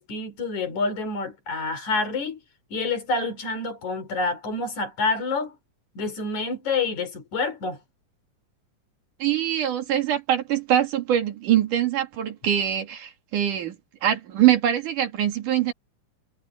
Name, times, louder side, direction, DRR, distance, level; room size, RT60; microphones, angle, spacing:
voice 1, 0.0-2.4 2.7-5.6 5.9-7.8, left 3 dB, 60° left, 4.9 m, -28 dB
voice 2, 9.2-13.8 14.0-15.7, right 11 dB, 75° right, 3.8 m, -23 dB
omnidirectional pair, 3.7 m